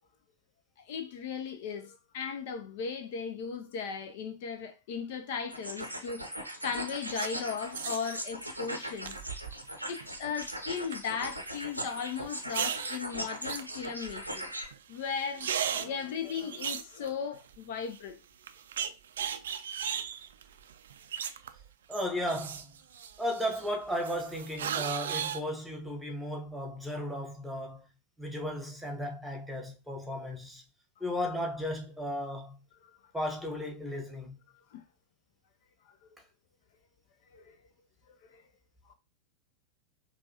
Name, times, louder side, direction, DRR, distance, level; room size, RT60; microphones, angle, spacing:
voice 1, 0.8-6.2 6.6-9.2 9.9-14.5 14.9-18.2 32.8-33.0 34.7-34.8 37.3-37.5 38.1-38.4 38.9-39.0, left 6 dB, 50° left, 0.4 m, -37 dB
sound 1, 5.5-14.6, right 1 dB, 90° right, 0.7 m, -40 dB
sound 2, 6.7-7.3 7.8-8.2 9.0-9.7 10.0-10.5 10.9-11.0 12.3-13.0 13.5-14.4 14.7-14.8 15.1-17.6 17.9-18.0 18.5-21.7 21.9-23.7 24.0-25.4, right 8 dB, 60° right, 0.3 m, -36 dB
voice 2, 21.9-22.7 23.2-27.9 28.2-30.6 31.0-32.5 33.1-34.3, equal, 5° right, 1.1 m, -35 dB
5.2 x 2.2 x 2.8 m
figure-of-eight pair, 90°, 0 cm